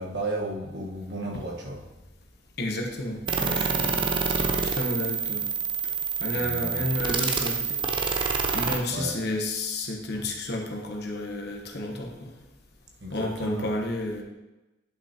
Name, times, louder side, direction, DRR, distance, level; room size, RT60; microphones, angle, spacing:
voice 1, 0.0-1.9 6.3-6.8 8.9-9.2 13.0-13.7, right 2 dB, 60° right, -1 dB, 1.4 m, -34 dB
voice 2, 2.6-4.1 4.6-5.5 5.8-5.9 6.2-7.8 8.2-12.3 13.1-14.2, left 1 dB, 60° left, 1 dB, 1.1 m, -31 dB
sound 1, 3.3-8.8, right 5 dB, 25° right, 0.5 m, -27 dB
10.5 x 6.0 x 2.9 m, 1.1 s
head